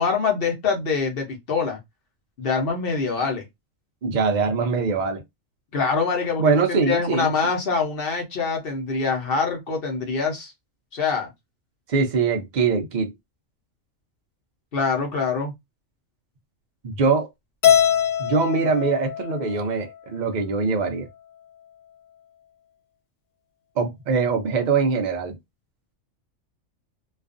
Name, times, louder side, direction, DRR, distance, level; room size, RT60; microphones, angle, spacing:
voice 1, 0.0-1.8 2.4-3.4 5.7-10.5 10.9-11.3 14.7-15.5, left 5 dB, 50° left, 0.8 m, -24 dB
voice 2, 4.0-5.2 6.4-7.3 11.9-13.1 16.8-17.3 18.2-21.1 23.8-25.4, right 4 dB, 85° right, 0.4 m, -22 dB
Keyboard (musical), 17.6-20.0, left 9 dB, 85° left, 1.0 m, -22 dB
2.4 x 2.3 x 2.4 m
omnidirectional pair, 1.4 m